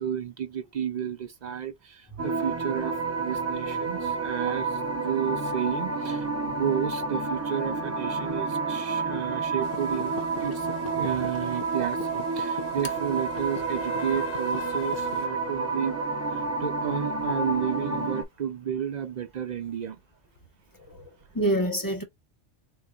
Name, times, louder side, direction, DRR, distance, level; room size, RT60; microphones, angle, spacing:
voice 1, 0.0-10.7 10.9-20.0, right 9 dB, 65° right, 0.4 m, -32 dB
sound 1, 2.2-18.2, right 4 dB, 15° right, 0.6 m, -30 dB
sound 2, 9.6-15.3, left 8 dB, 85° left, 1.1 m, -43 dB
sound 3, 10.6-16.3 20.4-20.5, left 10 dB, 60° left, 0.6 m, -43 dB
voice 2, 20.8-22.0, right 1 dB, 20° left, 1.0 m, -28 dB
6.3 x 2.5 x 2.3 m
omnidirectional pair, 1.2 m